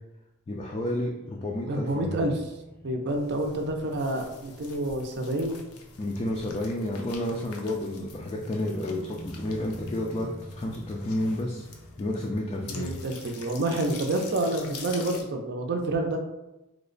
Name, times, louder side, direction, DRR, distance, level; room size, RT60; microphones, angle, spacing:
voice 1, 0.5-2.2 6.0-11.7 12.0-12.9, left 1 dB, 25° left, -2 dB, 0.3 m, -31 dB
sound 1, 1.2-6.6 6.9-7.0 8.2-14.8, equal, ahead, 0.7 m, -48 dB
voice 2, 1.7-2.3 2.8-5.6 12.7-16.2, right 2 dB, 50° right, 4 dB, 0.5 m, -28 dB
sound 2, 3.1-15.2, left 4 dB, 75° left, 0.5 m, -46 dB
3.1 x 2.1 x 3.8 m, 0.95 s
head